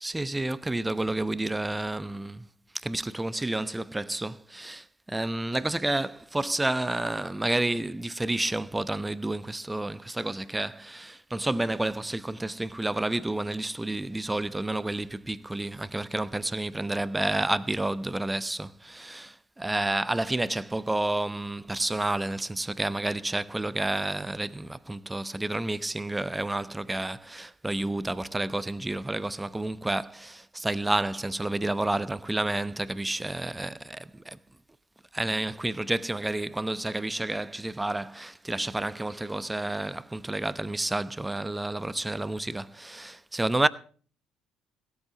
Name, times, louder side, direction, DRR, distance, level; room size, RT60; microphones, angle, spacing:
voice 1, 0.0-2.4 2.8-19.3 19.6-34.4 35.1-43.7, right 2 dB, 15° right, 0.9 m, -30 dB
16.5 x 13.5 x 3.0 m
hypercardioid pair, 60°, 0 cm